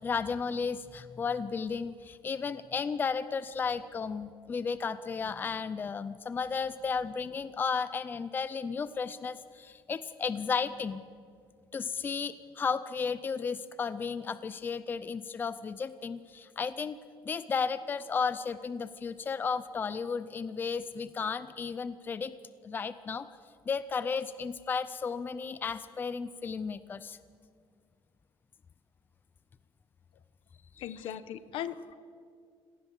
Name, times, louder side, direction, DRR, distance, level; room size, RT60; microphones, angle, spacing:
voice 1, 0.0-11.0 11.7-17.0 17.2-22.3 22.6-23.3 23.7-27.2, left 5 dB, 20° left, 14 dB, 0.5 m, -34 dB
voice 2, 30.8-32.0, left 10 dB, 70° left, 14 dB, 1.0 m, -38 dB
25.5 x 18.0 x 7.1 m, 2.2 s
cardioid pair, 175°, 9 cm